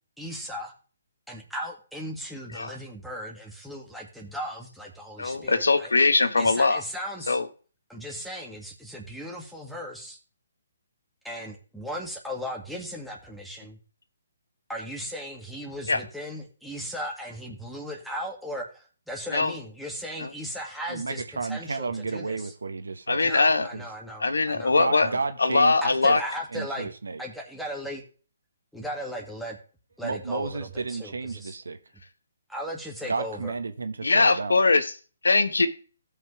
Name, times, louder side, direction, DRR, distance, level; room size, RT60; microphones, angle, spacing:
voice 1, 0.2-0.7 1.3-5.9 6.4-7.4 7.9-10.2 11.2-13.8 14.7-22.5 23.2-25.2 25.8-26.9 27.2-28.0 28.7-29.6 30.0-31.6 32.5-33.5, equal, ahead, -1 dB, 2.0 m, -37 dB
voice 2, 5.2-6.8 7.3-7.5 15.9-16.0 19.3-19.5 20.2-20.3 23.1-23.7 24.2-25.1 25.4-26.2 34.0-34.9 35.2-35.7, left 3 dB, 90° left, 10 dB, 1.1 m, -21 dB
voice 3, 20.9-23.3 23.7-23.9 24.8-25.8 26.1-26.2 26.5-27.2 30.0-31.8 33.1-34.6, right 4 dB, 85° right, 9 dB, 1.4 m, -32 dB
16.5 x 5.5 x 3.3 m, 0.38 s
hypercardioid pair, 150°, 0 cm